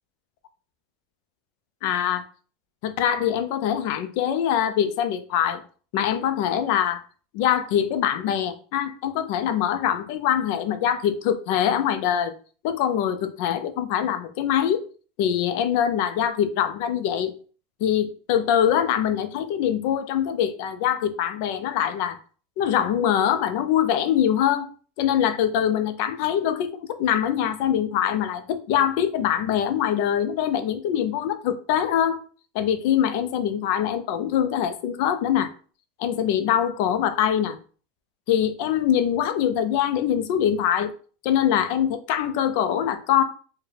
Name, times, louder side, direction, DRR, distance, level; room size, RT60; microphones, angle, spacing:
voice 1, 1.8-2.2 2.8-5.6 5.9-7.0 7.3-12.3 12.6-14.9 15.2-17.4 17.8-22.2 22.6-24.7 25.0-32.2 32.5-35.5 36.0-37.6 38.3-40.9 41.2-43.2, left 10 dB, 50° left, 0.5 m, -23 dB
4.6 x 2.2 x 3.3 m
supercardioid pair, 165°, 0 cm